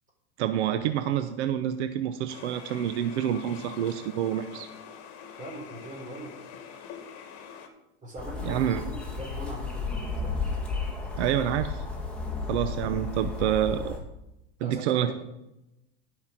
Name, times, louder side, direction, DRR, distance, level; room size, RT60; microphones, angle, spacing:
voice 1, 0.4-4.7 8.5-8.8 11.2-11.8 12.5-14.0 14.6-15.1, right 10 dB, 80° right, 10 dB, 0.8 m, -27 dB
sound 1, 2.3-7.7, left 7 dB, 50° left, 1.8 m, -45 dB
voice 2, 5.4-6.4 8.0-10.8 14.6-15.1, right 1 dB, 25° right, 1 dB, 3.6 m, -41 dB
sound 2, 8.2-14.0, left 4 dB, 5° left, 2.2 m, -33 dB
12.0 x 5.7 x 5.8 m, 0.91 s
supercardioid pair, 120°, 34 cm